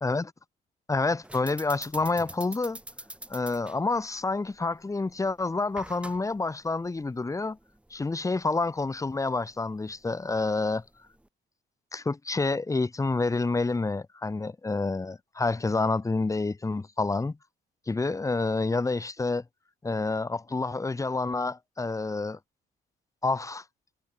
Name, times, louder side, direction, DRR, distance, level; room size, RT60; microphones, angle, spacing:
voice 1, 0.0-0.3 0.9-2.8 3.3-7.6 7.9-10.8 11.9-17.4 17.9-19.4 19.8-22.4 23.2-23.6, left 3 dB, 15° left, 0.7 m, -28 dB
sound 1, 1.2-11.3, right 1 dB, 5° right, 1.5 m, -47 dB
cardioid pair, 90°, 20 cm